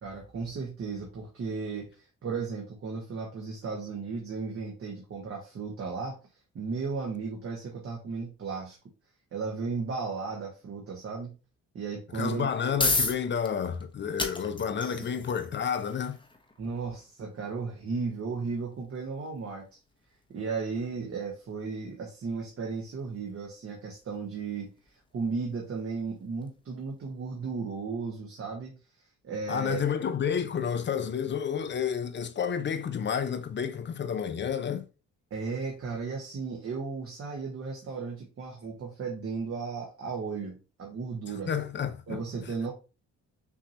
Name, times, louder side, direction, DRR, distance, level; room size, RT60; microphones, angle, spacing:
voice 1, 0.0-6.2 6.5-8.8 9.3-11.3 11.7-12.7 16.6-19.8 20.3-24.7 25.1-28.8 29.2-29.8 35.3-41.5 42.1-42.7, right 4 dB, 50° right, 1.2 m, -35 dB
voice 2, 12.1-16.2 29.5-34.8 41.5-42.2, left 7 dB, 40° left, 0.5 m, -30 dB
sound 1, 12.3-27.2, left 3 dB, 15° left, 0.9 m, -38 dB
6.0 x 2.8 x 2.8 m
cardioid pair, 90°, 30 cm